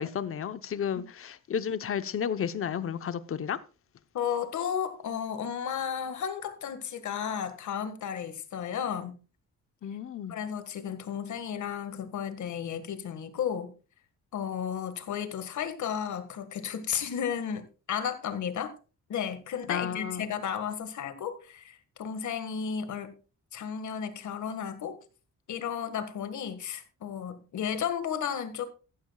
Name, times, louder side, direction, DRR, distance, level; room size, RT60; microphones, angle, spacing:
voice 1, 0.0-3.6 9.8-10.4 19.7-20.3, left 8 dB, 45° left, 0.8 m, -32 dB
voice 2, 4.1-9.2 10.3-13.7 14.3-18.7 19.1-23.1 23.5-25.0 25.5-28.7, left 8 dB, 70° left, 1.7 m, -33 dB
14.0 x 13.0 x 2.3 m
wide cardioid pair, 150°, 30 cm